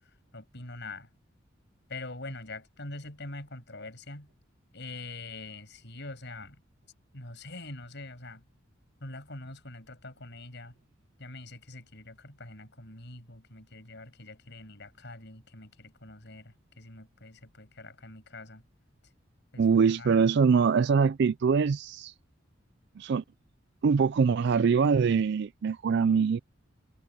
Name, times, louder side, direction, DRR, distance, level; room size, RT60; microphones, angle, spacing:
voice 1, 0.3-1.1 1.9-4.3 4.7-6.6 7.1-8.4 9.0-10.7 11.2-18.6 19.5-20.1, left 2 dB, 65° left, 7.4 m, -44 dB
voice 2, 19.6-22.1 23.0-23.2 23.8-26.4, right 5 dB, 60° right, 0.4 m, -23 dB
head